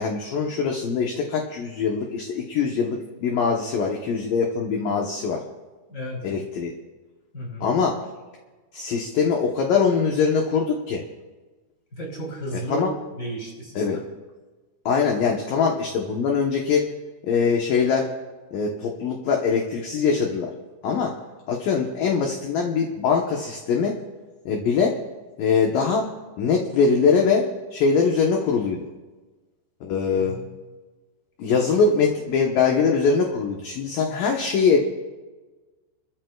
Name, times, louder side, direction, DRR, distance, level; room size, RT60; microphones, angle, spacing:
voice 1, 0.0-5.4 6.2-6.7 7.6-8.0 8.7-11.0 12.7-12.9 13.8-14.0 14.9-16.9 17.2-18.1 18.5-20.5 20.8-21.1 21.5-24.0 24.5-25.0 25.4-26.1 26.4-28.8 29.8-30.4 31.4-34.8, left 5 dB, 70° left, 0 dB, 2.3 m, -22 dB
voice 2, 5.9-6.2 7.3-7.7 11.9-12.9 13.2-14.0 30.2-30.5, right 1 dB, 20° left, -2 dB, 4.3 m, -33 dB
29.0 x 14.5 x 2.4 m, 1.2 s
omnidirectional pair, 5.2 m